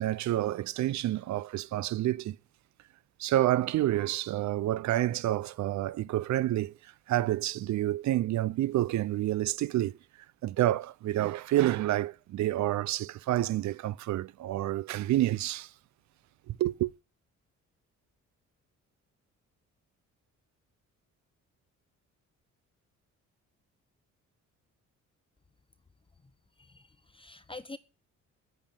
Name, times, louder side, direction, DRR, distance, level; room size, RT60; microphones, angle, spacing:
voice 1, 0.0-2.4 3.2-6.7 7.1-10.0 10.4-15.7 16.5-16.9, right 14 dB, 70° right, 0.6 m, -28 dB
voice 2, 26.6-27.8, left 2 dB, 15° left, 0.8 m, -46 dB
8.7 x 7.8 x 8.9 m
cardioid pair, 90°, 30 cm